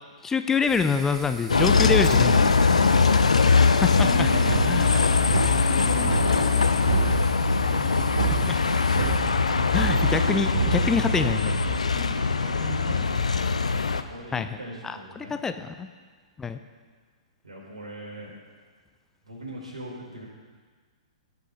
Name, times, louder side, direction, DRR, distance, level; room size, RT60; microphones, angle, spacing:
voice 1, 0.2-2.6 3.8-4.3 4.7-4.9 8.5-8.6 9.7-11.6 14.3-14.6 14.8-15.9 16.4-16.6, left 5 dB, 10° left, 9 dB, 0.5 m, -26 dB
sound 1, 0.7-9.2, equal, 5° right, 2.9 m, -45 dB
Bus, 1.5-14.0, left 5 dB, 75° left, 0.6 m, -22 dB
voice 2, 2.6-8.3 11.9-13.2 14.0-15.4 17.4-18.3 19.2-20.3, right 1 dB, 75° right, -3 dB, 4.4 m, -38 dB
sound 2, 4.3-11.8, right 13 dB, 45° right, 0.6 m, -31 dB
16.5 x 6.4 x 5.5 m, 1.5 s
figure-of-eight pair, 115°, 4 cm